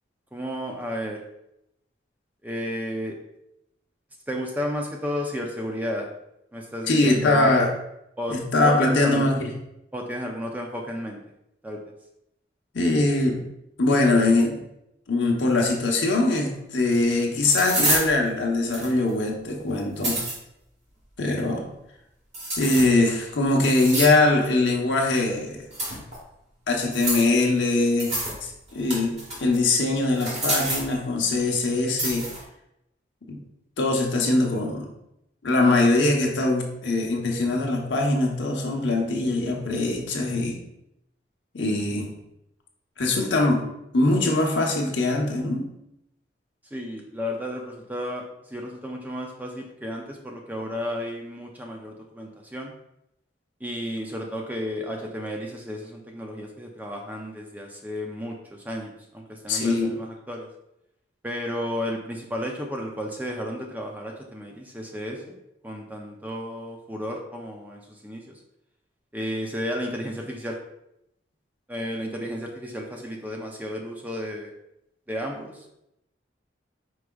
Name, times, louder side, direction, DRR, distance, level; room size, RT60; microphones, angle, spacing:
voice 1, 0.3-1.2 2.4-3.2 4.3-6.1 6.5-7.5 8.2-8.4 8.6-9.3 9.9-11.2 11.6-11.8 46.7-52.7 53.6-60.5 61.2-65.4 65.6-68.4 69.1-70.6 71.7-74.5 75.1-75.7, equal, 10° right, 1 dB, 0.4 m, -33 dB
voice 2, 6.9-7.7 8.3-9.4 12.7-13.4 13.8-14.6 15.1-20.2 21.2-21.6 22.6-25.7 26.7-28.1 28.4-32.3 33.3-33.4 33.8-34.9 35.4-40.6 41.5-42.1 43.0-43.6 43.9-45.7 59.5-59.9, left 2 dB, 80° left, 0 dB, 0.9 m, -22 dB
sound 1, 16.5-16.6 17.4-18.1 18.7-19.1 19.8-20.4 22.3-23.0 23.6-24.3 25.7-26.2 26.9-27.3 28.0-28.4 28.7-29.6 30.1-30.9 32.0-32.4, right 1 dB, 35° right, 1.6 m, -28 dB
4.8 x 4.7 x 2.3 m, 0.83 s
head